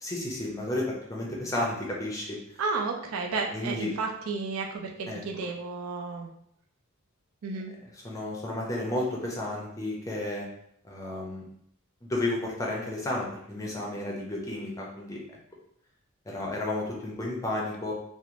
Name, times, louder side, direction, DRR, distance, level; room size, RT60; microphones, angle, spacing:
voice 1, 0.0-2.4 3.5-3.9 5.1-5.5 8.0-10.5 10.8-11.4 12.0-15.2 16.3-17.9, left 1 dB, 15° left, -2 dB, 0.5 m, -32 dB
voice 2, 2.6-6.3 7.4-7.7, right 4 dB, 80° right, 2 dB, 0.4 m, -32 dB
2.5 x 2.0 x 2.9 m, 0.70 s
head